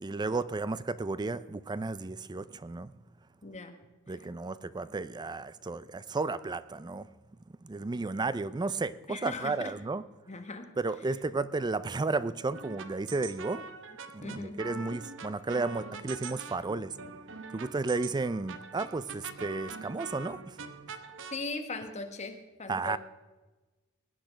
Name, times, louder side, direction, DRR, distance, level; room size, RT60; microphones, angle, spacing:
voice 1, 0.0-2.9 4.1-7.1 7.6-10.0 10.8-13.6 14.1-17.0 17.5-20.6 22.7-23.0, right 3 dB, 20° right, 16 dB, 0.4 m, -33 dB
voice 2, 3.4-3.7 9.1-9.7 10.3-10.7 14.2-14.6 21.3-23.0, left 3 dB, 30° left, 6 dB, 1.4 m, -39 dB
sound 1, 12.5-21.4, right 5 dB, 60° right, 0.9 m, -44 dB
20.0 x 8.7 x 5.1 m, 1.2 s
head